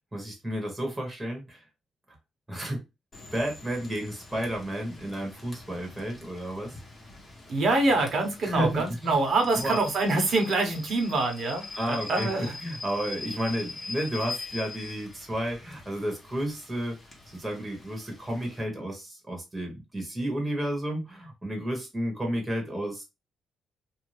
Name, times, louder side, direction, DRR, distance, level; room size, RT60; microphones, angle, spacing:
voice 1, 0.1-1.6 2.5-2.8 3.3-6.8 8.4-9.2 9.5-9.8 11.8-12.3 12.6-17.0 17.3-23.0, equal, 15° right, 2 dB, 1.2 m, -32 dB
Rain / Train, 3.1-18.6, left 3 dB, 35° left, 1.1 m, -43 dB
voice 2, 7.5-12.6, right 2 dB, 55° right, 2 dB, 1.1 m, -25 dB
2.6 x 2.3 x 3.2 m, 0.25 s
cardioid pair, 90°, 0 cm